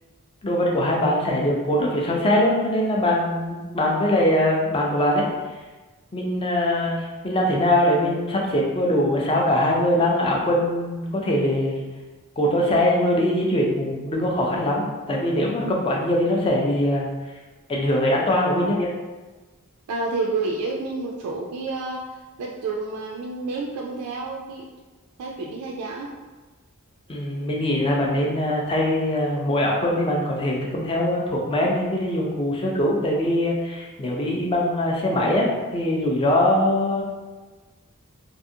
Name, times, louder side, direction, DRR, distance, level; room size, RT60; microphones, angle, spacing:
voice 1, 0.4-5.3 6.1-11.8 12.4-17.1 17.7-18.9 27.1-37.0, left 1 dB, 25° left, -2 dB, 0.4 m, -22 dB
voice 2, 19.9-24.7 25.2-26.1, right 3 dB, 85° right, -1 dB, 0.3 m, -30 dB
2.4 x 2.4 x 2.7 m, 1.3 s
head